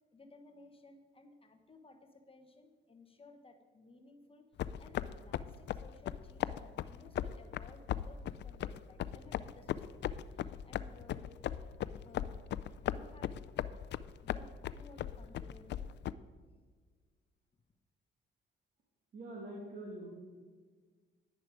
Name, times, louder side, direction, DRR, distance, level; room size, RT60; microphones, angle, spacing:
voice 1, 0.1-4.4 4.8-11.3 12.0-12.4 12.8-13.4 14.2-15.9, left 2 dB, 30° left, 6 dB, 1.1 m, -58 dB
sound 1, 4.6-16.1, left 11 dB, 60° left, 0.4 m, -38 dB
voice 2, 19.1-20.1, right 1 dB, 55° right, -3 dB, 2.5 m, -44 dB
10.0 x 10.0 x 4.9 m, 1.5 s
cardioid pair, 90°, 20 cm